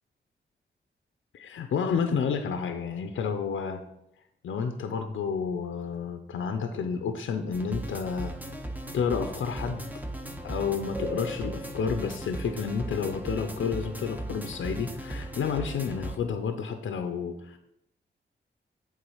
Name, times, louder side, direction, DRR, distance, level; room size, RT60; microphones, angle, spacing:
voice 1, 1.3-3.8 4.4-8.3 8.9-9.9 10.4-17.6, left 6 dB, 80° left, 7 dB, 0.6 m, -30 dB
sound 1, 7.5-16.2, right 1 dB, 10° right, 0.9 m, -37 dB
8.0 x 3.8 x 5.5 m, 0.82 s
cardioid pair, 60°, 20 cm